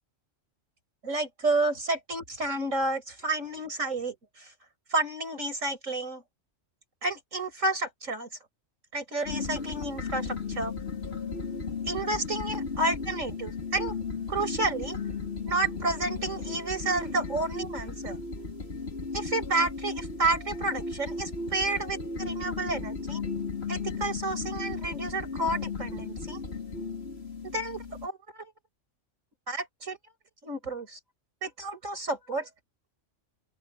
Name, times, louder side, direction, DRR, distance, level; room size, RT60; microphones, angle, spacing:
voice 1, 1.0-4.5 4.9-6.2 7.0-8.3 8.9-10.7 11.9-14.0 14.3-15.0 15.4-18.2 19.1-23.2 23.7-26.4 27.4-28.5 29.5-30.0 30.4-31.0 31.4-32.5, right 2 dB, 90° right, 5.6 m, -30 dB
sound 1, 9.2-28.1, left 4 dB, 55° left, 3.2 m, -35 dB
open air
omnidirectional pair, 1.3 m